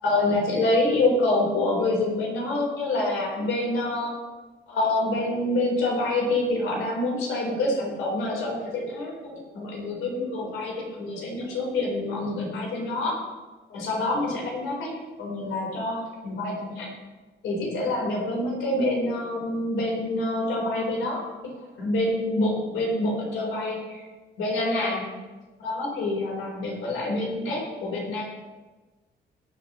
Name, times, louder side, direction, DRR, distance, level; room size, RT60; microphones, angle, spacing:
voice 1, 0.0-4.1 4.7-13.2 13.7-14.9 15.2-16.9 17.4-21.5 21.8-23.8 24.4-25.0 25.6-28.2, left 2 dB, 80° left, -2 dB, 4.1 m, -26 dB
18.5 x 7.4 x 3.1 m, 1.2 s
cardioid pair, 90°, 20 cm